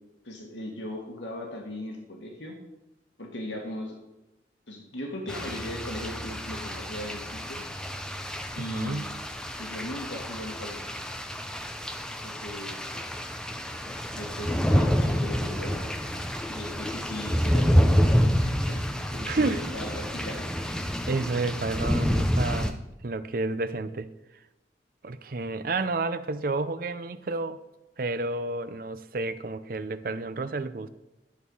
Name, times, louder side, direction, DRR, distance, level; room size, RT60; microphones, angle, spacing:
voice 1, 0.2-2.5 3.2-4.0 4.7-7.6 8.5-9.1 9.6-11.0 12.2-12.9 13.9-15.8 16.5-18.8 19.1-20.5, left 1 dB, 90° left, 1 dB, 1.9 m, -38 dB
sound 1, 5.3-22.7, equal, 5° left, 0.6 m, -28 dB
voice 2, 8.6-9.0 19.3-19.7 21.1-24.1 25.0-27.6 28.0-30.9, right 3 dB, 50° right, 12 dB, 0.6 m, -30 dB
11.5 x 6.6 x 5.5 m, 0.97 s
head